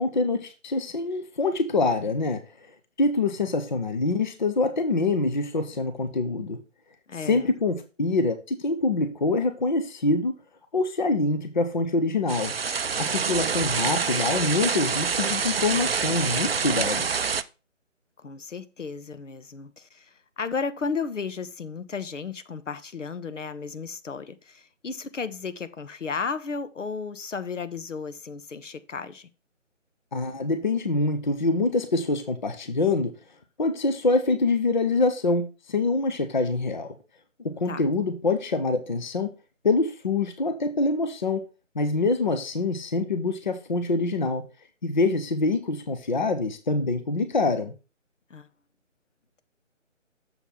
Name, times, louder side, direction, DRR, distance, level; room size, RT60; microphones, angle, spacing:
voice 1, 0.0-2.4 3.0-6.6 7.2-10.4 10.7-12.5 13.0-17.1 30.1-33.1 33.6-36.9 37.4-39.3 39.6-41.4 41.7-44.4 44.8-47.7, left 3 dB, 40° left, 0.7 m, -25 dB
voice 2, 7.1-7.5 18.2-29.3 37.6-37.8 48.3-48.5, left 5 dB, 70° left, 1.0 m, -34 dB
sound 1, 12.3-17.4, right 6 dB, 50° right, 0.4 m, -26 dB
7.0 x 4.1 x 5.6 m
figure-of-eight pair, 165°, 38 cm